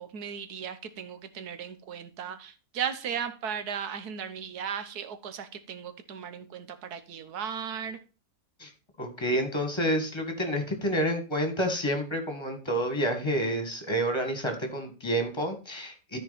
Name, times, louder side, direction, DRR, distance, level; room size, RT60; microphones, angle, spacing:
voice 1, 0.0-8.0, right 8 dB, 85° right, 1.5 m, -36 dB
voice 2, 9.0-16.2, equal, 20° left, 1.7 m, -29 dB
13.5 x 4.6 x 4.1 m
omnidirectional pair, 1.6 m